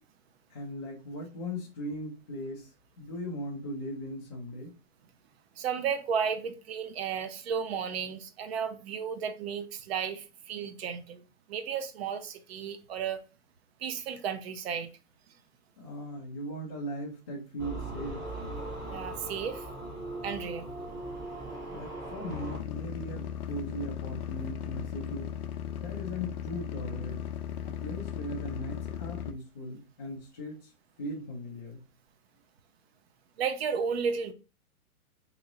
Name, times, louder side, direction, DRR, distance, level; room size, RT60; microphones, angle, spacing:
voice 1, 0.5-4.7 15.8-18.2 21.7-25.4 25.8-27.3 27.6-30.7 31.0-31.9, equal, 20° left, 0.3 m, -39 dB
voice 2, 5.6-13.2 13.8-14.9 18.9-19.7 20.2-20.7 33.4-34.3, right 7 dB, 45° right, 0.5 m, -33 dB
sound 1, 17.6-22.6, right 2 dB, 25° right, 1.1 m, -39 dB
sound 2, 22.3-29.3, left 9 dB, 80° left, 0.6 m, -37 dB
3.0 x 2.8 x 3.7 m
hypercardioid pair, 145°, 44 cm